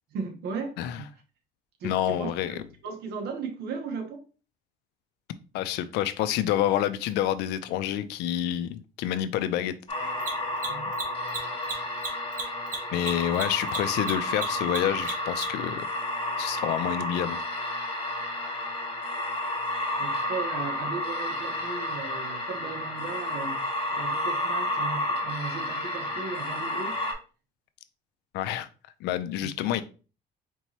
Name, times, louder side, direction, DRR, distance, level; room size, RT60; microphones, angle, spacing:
voice 1, 0.1-1.1 1.8-4.2 10.6-10.9 12.9-13.0 20.0-23.6 23.9-27.0 29.4-29.5, right 5 dB, 75° right, 1.1 m, -37 dB
voice 2, 1.8-2.6 5.5-9.7 10.0-10.1 12.9-15.9 16.4-17.4 28.3-28.7 29.0-29.8, left 11 dB, 85° left, 0.4 m, -28 dB
Mechanisms, 7.0-7.1 10.1-15.7, right 4 dB, 50° right, 1.2 m, -35 dB
sound 1, 9.9-27.1, left 1 dB, 35° left, 1.3 m, -31 dB
4.4 x 3.0 x 2.8 m
cardioid pair, 110°, 17 cm